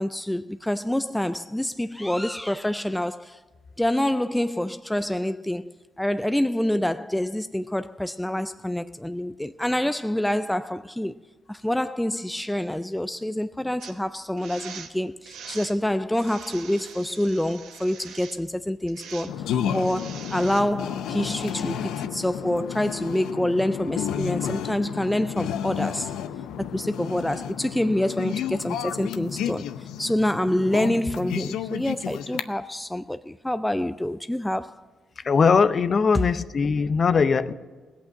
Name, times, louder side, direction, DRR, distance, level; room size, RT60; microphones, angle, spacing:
voice 1, 0.0-3.4 3.8-11.2 11.5-19.3 19.7-26.1 26.7-34.8, left 1 dB, 5° left, 0.3 m, -27 dB
sound 1, 13.8-14.0 14.4-14.9 15.2-15.8 16.1-18.4 18.9-19.3 19.7-20.6, right 7 dB, 85° right, 1.3 m, -43 dB
sound 2, 19.3-32.4, left 9 dB, 85° left, 0.6 m, -31 dB
voice 2, 35.2-37.5, left 5 dB, 40° left, 0.6 m, -20 dB
18.0 x 8.4 x 6.3 m
cardioid pair, 90°, 0 cm